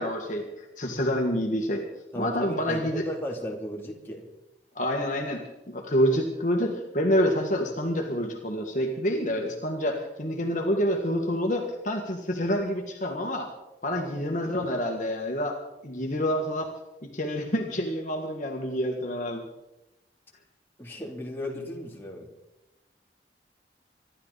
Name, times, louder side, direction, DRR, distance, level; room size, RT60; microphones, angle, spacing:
voice 1, 0.0-1.8 2.2-3.0 4.8-5.4 5.7-13.5 13.8-15.6 15.8-16.7 17.1-19.4, equal, 45° left, 2 dB, 2.0 m, -27 dB
voice 2, 2.1-4.2 20.8-22.3, equal, 15° left, -2 dB, 3.2 m, -35 dB
26.0 x 12.0 x 4.2 m, 0.94 s
head